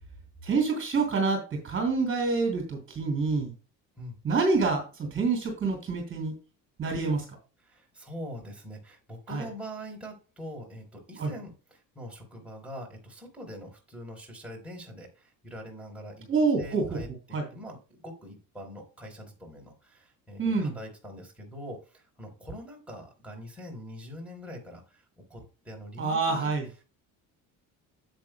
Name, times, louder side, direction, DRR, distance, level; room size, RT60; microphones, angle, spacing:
voice 1, 0.4-3.5 4.2-6.3 6.8-7.2 9.3-9.5 11.2-11.3 16.3-16.8 17.3-17.4 20.4-20.8 26.0-26.7, right 4 dB, 35° right, 3 dB, 3.3 m, -27 dB
voice 2, 7.6-16.3 16.6-25.0 25.3-26.5, equal, 5° right, -1 dB, 4.1 m, -43 dB
10.5 x 8.3 x 2.2 m, 0.33 s
cardioid pair, 115°, 38 cm